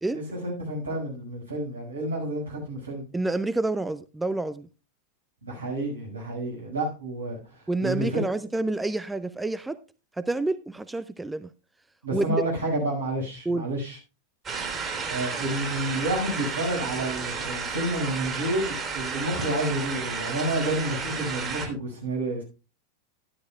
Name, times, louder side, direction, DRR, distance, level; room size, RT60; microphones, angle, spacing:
voice 1, 0.1-3.1 5.4-8.2 12.0-14.0 15.1-22.4, right 1 dB, 75° right, 6.1 m, -30 dB
voice 2, 3.1-4.7 7.7-9.8 10.2-11.5 12.1-12.4 13.5-13.7, right 2 dB, 5° right, 0.4 m, -28 dB
sound 1, 14.5-21.7, right 5 dB, 25° right, 3.4 m, -32 dB
12.0 x 11.5 x 2.4 m
figure-of-eight pair, 90°, 0 cm